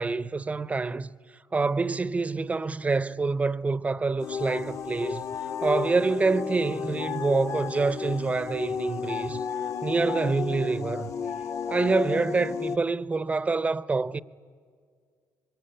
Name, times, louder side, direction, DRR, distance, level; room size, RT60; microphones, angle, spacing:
voice 1, 0.0-1.1 1.5-5.2 5.6-9.4 9.8-11.1 11.7-14.2, right 3 dB, 20° right, 0.7 m, -26 dB
sound 1, 4.2-12.8, left 6 dB, 45° left, 0.9 m, -33 dB
sound 2, 4.3-8.7 9.1-10.3 11.2-11.9, left 8 dB, 70° left, 3.5 m, -39 dB
23.5 x 22.5 x 9.9 m
cardioid pair, 110°, 7 cm